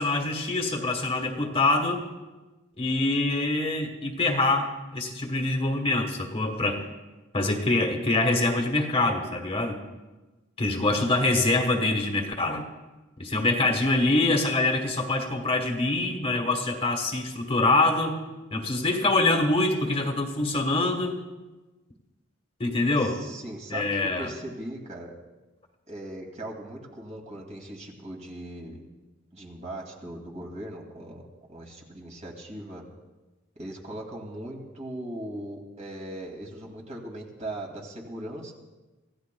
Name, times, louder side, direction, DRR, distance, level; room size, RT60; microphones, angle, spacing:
voice 1, 0.0-2.0 2.8-6.8 7.3-9.8 10.6-12.7 13.2-18.2 18.5-21.2 22.6-23.2 23.7-24.3, left 2 dB, 30° left, 3 dB, 1.4 m, -25 dB
voice 2, 23.0-25.1 25.9-28.8 29.3-32.8 33.6-38.5, right 1 dB, 35° right, 0 dB, 2.4 m, -39 dB
26.5 x 15.5 x 2.3 m, 1.2 s
head